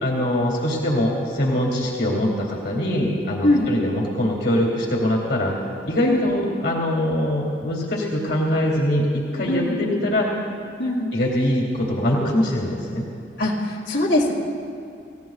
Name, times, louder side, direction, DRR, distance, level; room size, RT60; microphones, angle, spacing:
voice 1, 0.0-5.5 5.9-10.3 11.1-13.1, left 1 dB, 65° left, -2 dB, 2.3 m, -23 dB
voice 2, 3.4-3.8 6.0-6.3 9.5-9.8 10.8-11.1 13.4-14.3, left 1 dB, 80° left, -3 dB, 2.4 m, -22 dB
29.0 x 16.0 x 2.4 m, 2.4 s
head